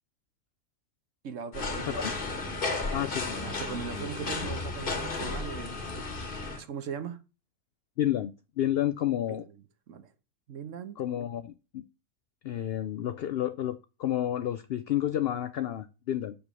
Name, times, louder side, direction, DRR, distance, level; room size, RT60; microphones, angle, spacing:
voice 1, 1.2-2.5 3.3-6.1 6.6-7.2 9.3-9.5 9.9-10.1 10.5-11.0, right 7 dB, 65° right, 1.2 m, -40 dB
sound 1, 1.5-6.6, left 3 dB, 40° left, 1.4 m, -33 dB
voice 2, 2.9-3.4 8.0-8.3 8.6-9.4 11.0-11.8 12.4-16.4, left 12 dB, 70° left, 0.6 m, -30 dB
6.8 x 5.2 x 6.1 m
omnidirectional pair, 1.5 m